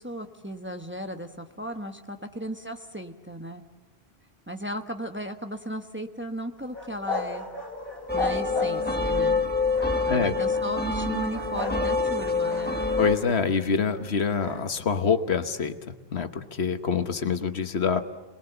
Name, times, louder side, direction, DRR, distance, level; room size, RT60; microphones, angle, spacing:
voice 1, 0.0-3.6 4.5-7.5 8.1-9.4 10.0-12.8, equal, 10° right, 5 dB, 1.1 m, -36 dB
sound 1, 6.7-9.1 9.7-10.7 11.3-11.9 12.1-13.6 14.3-14.6, left 2 dB, 60° left, 3.8 m, -35 dB
sound 2, 8.1-13.2, left 3 dB, 10° left, 1.3 m, -26 dB
voice 2, 13.0-18.0, left 6 dB, 80° left, 9 dB, 1.4 m, -26 dB
27.5 x 20.5 x 7.9 m, 1.2 s
omnidirectional pair, 1.1 m